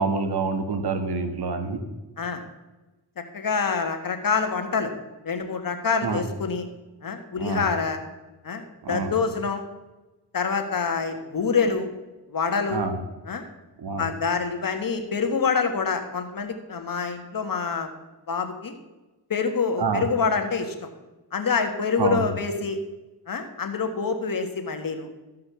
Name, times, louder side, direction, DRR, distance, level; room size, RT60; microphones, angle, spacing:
voice 1, 0.0-1.8 6.0-6.2 7.4-7.7 8.8-9.1 12.7-13.0 13.8-14.1 19.8-20.1 22.0-22.2, right 4 dB, 75° right, 7 dB, 1.6 m, -27 dB
voice 2, 3.2-4.9 5.2-6.6 7.0-8.0 8.4-9.6 10.3-11.9 12.3-12.8 13.3-13.4 14.0-17.9 18.3-18.8 19.3-20.9 21.3-22.8 23.3-25.1, left 5 dB, 55° left, 6 dB, 1.6 m, -26 dB
14.0 x 5.7 x 6.9 m, 1.1 s
cardioid pair, 65°, 40 cm